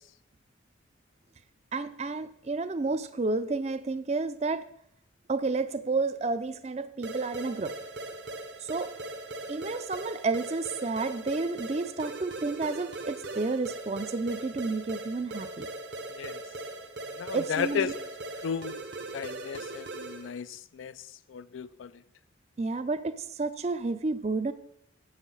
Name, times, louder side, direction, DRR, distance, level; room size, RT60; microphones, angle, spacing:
voice 1, 1.7-4.7 5.3-7.8 8.6-8.9 9.5-15.7 17.3-17.9 22.6-24.5, right 3 dB, 35° right, 0.4 m, -31 dB
sound 1, 7.0-20.4, right 2 dB, 55° right, 0.9 m, -40 dB
voice 2, 17.2-17.9 18.4-18.8 19.1-20.9 21.3-21.9, left 7 dB, 80° left, 0.4 m, -34 dB
8.0 x 6.5 x 5.4 m
head